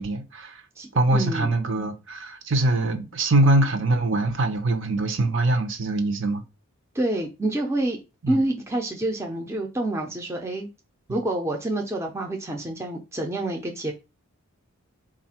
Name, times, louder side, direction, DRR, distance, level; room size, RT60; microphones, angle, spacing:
voice 1, 0.0-0.6 0.9-6.4 8.2-8.4 11.1-11.3, right 2 dB, 55° right, 0.8 m, -23 dB
voice 2, 0.8-1.5 6.9-8.0 8.3-10.7 11.1-13.9, right 1 dB, 15° right, 0.5 m, -27 dB
4.2 x 2.5 x 4.2 m
head